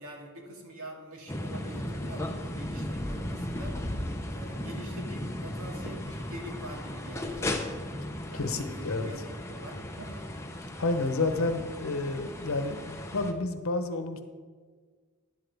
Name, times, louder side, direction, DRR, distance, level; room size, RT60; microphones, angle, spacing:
voice 1, 0.0-3.8 4.3-7.6 8.3-10.3, right 1 dB, 75° right, 0 dB, 2.3 m, -44 dB
sound 1, 1.3-13.3, left 1 dB, 10° left, 0.7 m, -36 dB
voice 2, 8.3-9.1 10.8-14.2, left 2 dB, 70° left, 8 dB, 0.9 m, -30 dB
12.0 x 11.0 x 3.5 m, 1.5 s
head